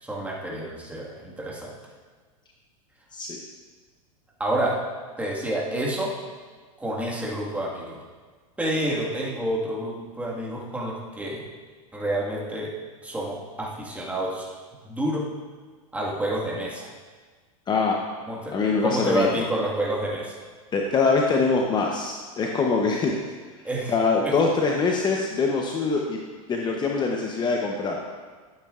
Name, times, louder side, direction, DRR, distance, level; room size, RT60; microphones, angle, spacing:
voice 1, 0.0-1.7 4.4-4.8 5.2-6.1 6.8-8.0 8.6-11.4 11.9-12.7 13.0-14.5 14.8-15.3 15.9-16.9 18.3-18.5 18.8-20.4 23.6-23.9 24.2-24.3, right 1 dB, 10° right, -3 dB, 1.6 m, -28 dB
voice 2, 17.7-18.0 18.5-19.5 20.7-23.2 23.9-26.2 26.5-28.0, left 4 dB, 25° left, 0 dB, 0.8 m, -23 dB
11.5 x 8.8 x 2.4 m, 1.5 s
hypercardioid pair, 115°, 18 cm